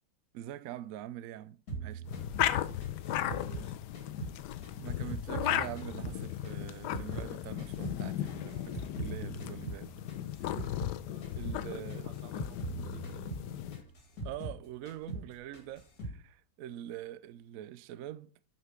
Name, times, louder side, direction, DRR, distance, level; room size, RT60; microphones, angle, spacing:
voice 1, 0.3-2.1 4.8-9.9 10.4-10.9 11.4-12.1 14.2-18.3, right 12 dB, 85° right, 0.7 m, -44 dB
sound 1, 1.7-4.4 4.6-7.3 7.6-11.0 11.2-11.6 11.9-14.6 14.9-15.3 15.5-16.2, right 3 dB, 55° left, 2.7 m, -41 dB
sound 2, 2.0-13.8, left 12 dB, 70° left, 1.1 m, -36 dB
voice 2, 3.0-3.8 11.0-13.3, right 4 dB, 65° right, 1.8 m, -55 dB
8.0 x 5.8 x 5.6 m
omnidirectional pair, 2.0 m